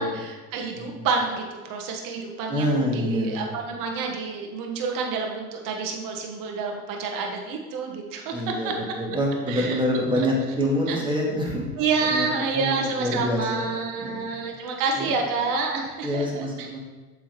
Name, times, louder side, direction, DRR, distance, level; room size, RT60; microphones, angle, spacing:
voice 1, 0.0-8.7 9.5-9.8 10.2-10.3 10.9-11.0 11.8-16.7, right 4 dB, 55° right, 2 dB, 1.2 m, -28 dB
voice 2, 0.7-1.1 2.5-3.5 8.3-11.7 12.1-12.3 12.5-13.7 14.0-14.3 15.0-15.1 16.0-16.8, equal, 15° right, -2 dB, 1.8 m, -26 dB
7.2 x 3.7 x 4.5 m, 1.3 s
supercardioid pair, 90°, 38 cm